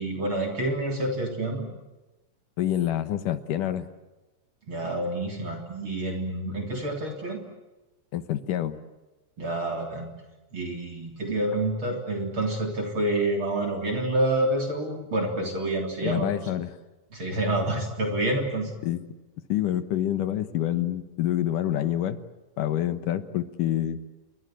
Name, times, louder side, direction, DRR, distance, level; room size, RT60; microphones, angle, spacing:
voice 1, 0.0-1.7 4.7-7.4 9.4-10.1 10.5-16.3 17.1-18.7, right 1 dB, 40° right, 2 dB, 4.1 m, -28 dB
voice 2, 2.6-3.9 8.1-8.8 16.0-16.7 18.8-19.1 19.5-22.2 22.6-24.0, left 12 dB, 80° left, 11 dB, 2.9 m, -27 dB
29.0 x 24.0 x 7.7 m, 1.1 s
omnidirectional pair, 3.7 m